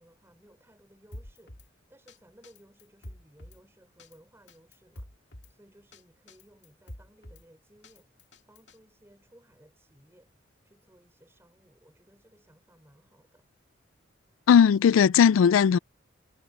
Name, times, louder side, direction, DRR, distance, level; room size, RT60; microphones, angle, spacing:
voice 1, 0.0-13.5, equal, 15° right, 3.8 m, -59 dB
Drum kit, 1.1-1.7 2.1-2.2 2.4-3.6 4.0-4.2 4.5-5.5 5.9-6.0 6.3-7.4 7.8-8.8, left 1 dB, 60° left, 2.4 m, -46 dB
voice 2, 14.5-15.8, left 7 dB, 90° left, 0.3 m, -18 dB
head